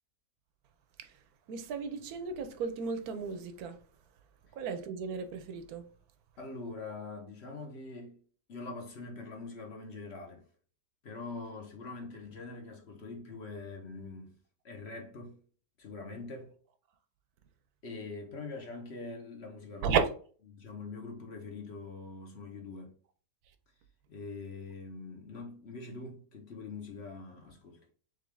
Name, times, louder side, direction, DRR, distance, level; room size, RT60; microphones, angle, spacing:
voice 1, 1.5-3.8 4.5-5.9 19.8-20.1, right 6 dB, 70° right, 1.1 m, -34 dB
voice 2, 6.4-8.2 8.5-10.4 11.0-14.3 14.6-15.4 15.8-16.5 17.8-19.9 20.5-22.9 24.1-27.8, left 3 dB, 45° left, 1.0 m, -43 dB
3.8 x 3.4 x 3.4 m
omnidirectional pair, 1.8 m